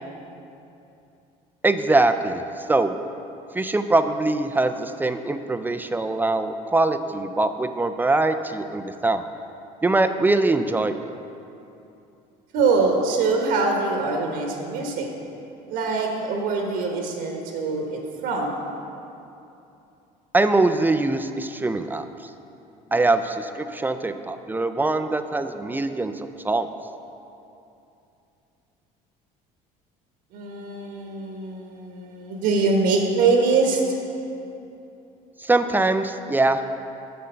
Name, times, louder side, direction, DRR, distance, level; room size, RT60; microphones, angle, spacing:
voice 1, 1.6-3.0 3.5-9.2 9.8-11.1 20.3-22.3 22.9-26.7 35.4-36.6, right 2 dB, 10° right, 9 dB, 0.4 m, -23 dB
voice 2, 12.5-15.1 15.7-18.6 30.3-33.8, right 4 dB, 75° right, 1 dB, 1.3 m, -23 dB
8.2 x 6.5 x 5.6 m, 2.8 s
cardioid pair, 110°, 16 cm